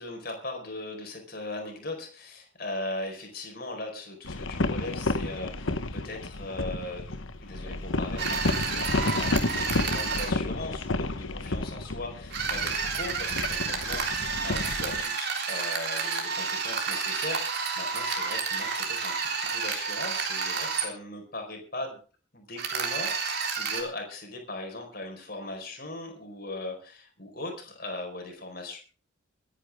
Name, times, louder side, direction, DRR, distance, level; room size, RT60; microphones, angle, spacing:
voice 1, 0.0-22.0 22.3-28.8, left 2 dB, 45° left, 3 dB, 4.6 m, -39 dB
sound 1, 4.2-15.0, left 2 dB, 70° left, 1.2 m, -31 dB
sound 2, 8.2-10.3 12.3-20.9 22.6-23.8, right 5 dB, 50° right, 3.5 m, -30 dB
24.0 x 10.0 x 3.6 m, 0.38 s
head